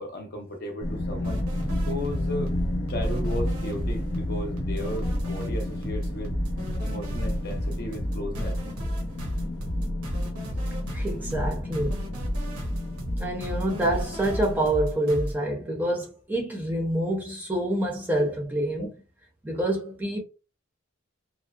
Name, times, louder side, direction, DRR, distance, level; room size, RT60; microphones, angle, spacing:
voice 1, 0.0-1.4 1.9-2.6 2.9-6.3 6.8-8.6 18.8-18.9, left 1 dB, 45° left, 0.6 m, -35 dB
sound 1, 0.8-14.7, left 1 dB, 80° left, 0.7 m, -32 dB
sound 2, 1.2-15.3, equal, 85° right, 0.8 m, -33 dB
voice 2, 10.9-11.9 13.2-18.9 19.4-20.2, right 1 dB, 10° right, 0.5 m, -27 dB
2.6 x 2.1 x 2.3 m
head